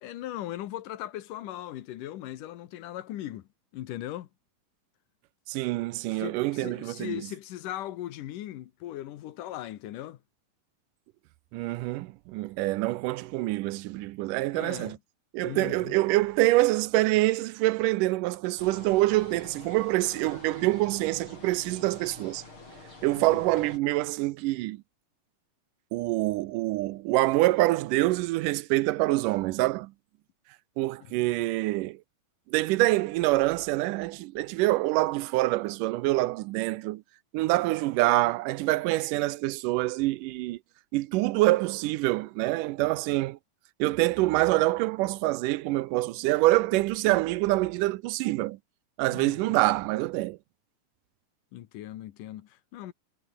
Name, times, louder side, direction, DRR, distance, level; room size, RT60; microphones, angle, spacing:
voice 1, 0.0-4.3 6.1-10.2 14.5-15.0 15.4-16.0 23.3-23.4 31.0-31.2 49.1-49.4 51.5-52.9, left 13 dB, 80° left, 2.7 m, -39 dB
voice 2, 5.5-7.2 11.5-15.0 15.3-22.4 23.0-24.8 25.9-29.9 30.8-32.0 32.5-37.0 37.3-40.6 40.9-43.4 43.8-48.6 49.0-50.4, right 18 dB, 85° right, 2.2 m, -26 dB
sound 1, 18.6-23.8, left 3 dB, 40° left, 7.1 m, -47 dB
omnidirectional pair, 3.7 m